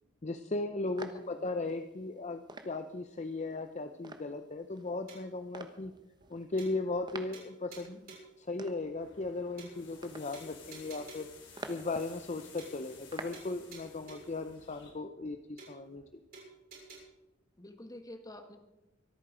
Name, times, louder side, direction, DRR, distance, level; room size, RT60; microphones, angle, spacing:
voice 1, 0.2-5.9 6.3-11.3 11.7-16.0, left 2 dB, 35° left, 8 dB, 0.6 m, -37 dB
voice 2, 1.0-1.5 17.6-18.6, left 1 dB, 20° left, 6 dB, 1.6 m, -49 dB
sound 1, 1.0-13.6, right 2 dB, 25° right, 1.2 m, -50 dB
sound 2, 5.1-5.4 5.8-5.9 6.2-6.3 6.6-7.1 7.3-8.4 8.8-8.9 9.2-9.3 9.6-10.1 10.3-11.4 11.8-11.9 12.2-12.3 12.6-13.1 13.3-14.4 14.8-14.9 15.2-15.3 15.6-16.1 16.3-17.0, right 3 dB, 50° right, 6.6 m, -52 dB
sound 3, 9.0-14.9, left 5 dB, 65° left, 4.0 m, -55 dB
24.5 x 9.1 x 5.0 m, 0.95 s
head